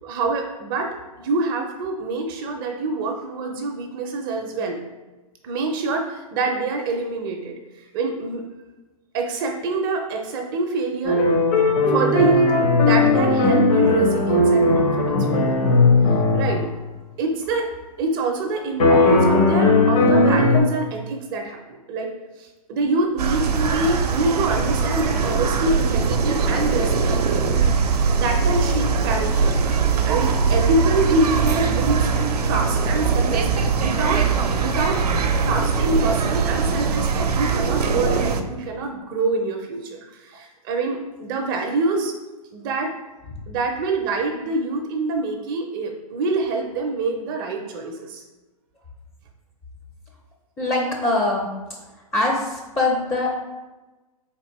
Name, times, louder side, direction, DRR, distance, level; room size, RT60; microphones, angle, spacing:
voice 1, 0.0-0.9 1.2-4.8 5.4-8.4 9.1-11.2 11.9-12.5 12.8-15.7 16.3-16.6 17.2-17.7 18.0-21.6 21.9-22.1 22.4-27.2 28.1-29.6 30.1-32.1 32.4-34.3 34.6-35.0 35.4-42.1 42.5-42.9 43.5-48.2, right 3 dB, 35° right, 3 dB, 0.5 m, -25 dB
sound 1, 11.0-16.7 18.8-20.6, left 2 dB, 65° left, 1.1 m, -17 dB
sound 2, 23.2-38.4, right 5 dB, 85° right, 0.5 m, -21 dB
voice 2, 50.6-51.5 52.1-53.3, left 2 dB, 15° left, -1 dB, 0.5 m, -22 dB
4.0 x 3.5 x 3.0 m, 1.2 s
hypercardioid pair, 125°, 20 cm